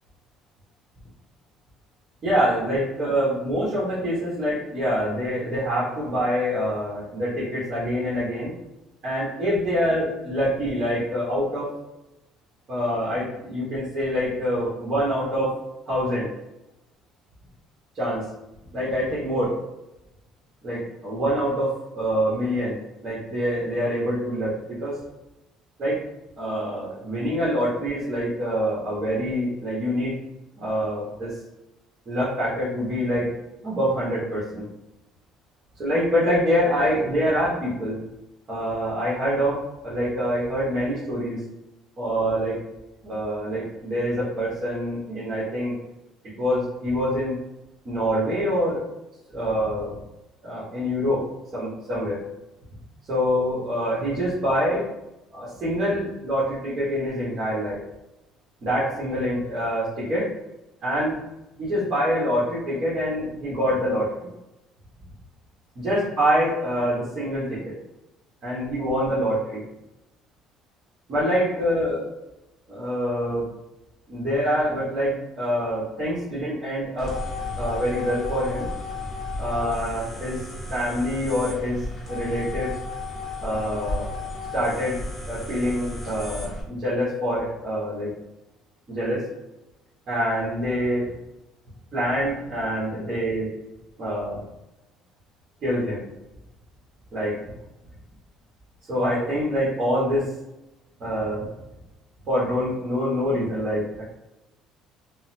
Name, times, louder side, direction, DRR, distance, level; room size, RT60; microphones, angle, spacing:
voice 1, 2.2-8.5 9.0-11.7 12.7-15.5 15.9-16.3 17.9-18.2 18.7-19.5 20.6-24.5 24.8-25.0 25.8-26.0 26.4-30.1 30.6-31.3 32.1-33.3 33.6-34.6 35.8-38.0 38.5-39.6 39.8-41.4 42.0-42.6 43.0-45.7 46.4-47.3 47.8-48.8 49.3-49.9 50.4-51.2 51.5-52.2 53.1-54.8 55.3-57.8 58.6-60.3 60.8-61.1 61.6-64.3 65.7-67.7 68.4-69.6 71.1-72.1 72.7-73.4 74.1-77.1 77.5-78.7 79.4-80.4 80.7-81.8 82.1-82.7 83.4-84.1 84.5-84.9 85.3-88.1 88.9-89.2 90.1-91.1 91.9-93.5 94.0-94.4 95.6-96.0 97.1-97.3 98.9-100.3 101.0-101.5 102.3-104.0, equal, 35° right, -9 dB, 1.1 m, -25 dB
sound 1, 77.0-86.6, left 2 dB, 25° left, 0.8 m, -33 dB
3.8 x 2.0 x 2.7 m, 0.94 s
cardioid pair, 145°, 0 cm